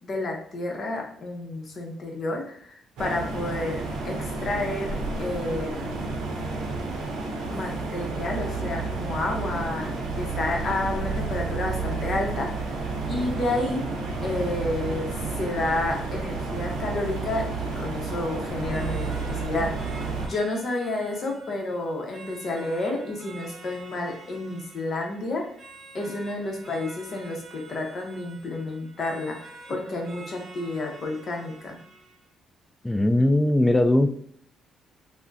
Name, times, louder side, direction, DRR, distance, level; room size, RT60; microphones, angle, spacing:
voice 1, 0.0-3.8 4.0-6.0 7.5-9.9 10.1-12.8 13.1-13.8 14.2-15.1 15.4-25.4 25.9-31.8, left 2 dB, 50° left, 1 dB, 0.8 m, -30 dB
sound 1, 3.0-20.3, right 3 dB, 90° right, 0.6 m, -31 dB
sound 2, 18.7-32.3, right 3 dB, 45° right, 0.9 m, -47 dB
voice 2, 32.8-34.2, left 1 dB, 10° left, 8 dB, 0.3 m, -20 dB
3.5 x 2.1 x 2.6 m, 0.63 s
cardioid pair, 90°, 0 cm